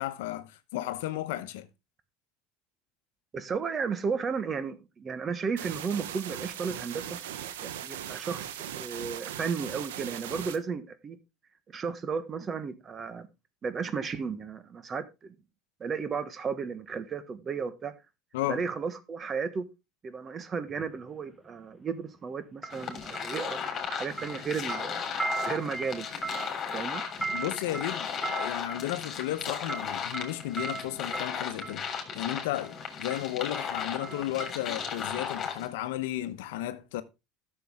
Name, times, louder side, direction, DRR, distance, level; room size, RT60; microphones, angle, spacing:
voice 1, 0.0-1.7 18.3-18.6 27.3-31.9 32.1-37.0, left 14 dB, 85° left, 0.9 m, -34 dB
voice 2, 3.3-7.2 7.6-11.2 11.7-13.3 13.6-15.3 15.8-17.9 18.5-19.7 20.0-23.6 23.9-25.0 25.4-26.1 26.7-27.0, right 5 dB, 30° right, 1.3 m, -34 dB
sound 1, 5.6-10.6, right 10 dB, 90° right, 1.0 m, -39 dB
sound 2, 20.7-20.9 22.6-23.9 24.2-31.9 32.6-32.8 33.1-35.0 35.3-35.4, right 3 dB, 5° left, 1.4 m, -38 dB
sound 3, 22.7-35.7, left 7 dB, 40° left, 3.2 m, -36 dB
11.5 x 6.9 x 3.6 m
supercardioid pair, 100°, 0 cm